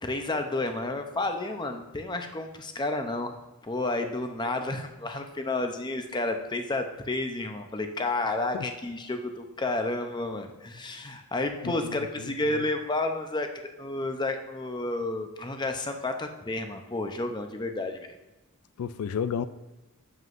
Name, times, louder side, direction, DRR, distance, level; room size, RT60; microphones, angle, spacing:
voice 1, 0.0-3.3 3.6-13.5 13.8-18.1, left 2 dB, 20° left, 6 dB, 0.6 m, -31 dB
voice 2, 11.6-12.3 18.8-19.5, left 7 dB, 80° left, 13 dB, 0.3 m, -32 dB
7.9 x 7.7 x 2.6 m, 1.1 s
head